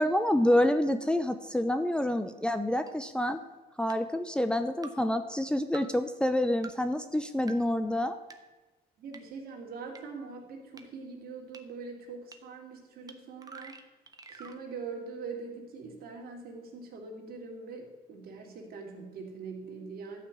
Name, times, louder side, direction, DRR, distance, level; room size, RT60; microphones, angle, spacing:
voice 1, 0.0-3.4 3.8-8.2, left 1 dB, 5° left, 9 dB, 0.7 m, -27 dB
sound 1, 2.9-3.0 3.9-4.0 4.8-4.9 5.7-5.8 6.6-6.7 7.5-7.6 8.3-8.4 9.1-9.2 10.0-10.1 10.8-10.9 11.5-11.6 12.3-12.4 13.1-13.2 13.4-14.6, right 4 dB, 20° right, 1.2 m, -46 dB
voice 2, 9.0-13.8 14.3-20.2, right 4 dB, 60° right, 1 dB, 3.1 m, -43 dB
13.0 x 5.9 x 8.5 m, 1.2 s
cardioid pair, 110°, 17 cm